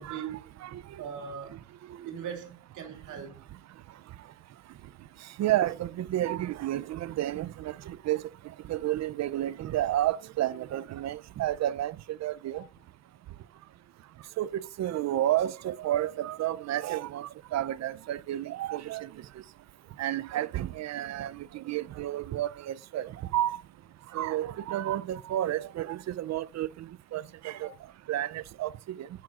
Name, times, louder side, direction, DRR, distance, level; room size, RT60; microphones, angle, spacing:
voice 1, 0.0-0.5 1.0-1.6 2.0-3.4 27.5-27.6, right 7 dB, 80° right, 2.8 m, -40 dB
voice 2, 5.4-8.2 8.7-12.0 12.2-12.6 14.4-19.1 20.0-23.6 24.1-26.7 27.1-27.7 28.1-28.7 29.0-29.1, right 13 dB, 60° right, 0.6 m, -31 dB
13.5 x 6.0 x 2.5 m
cardioid pair, 90°, 30 cm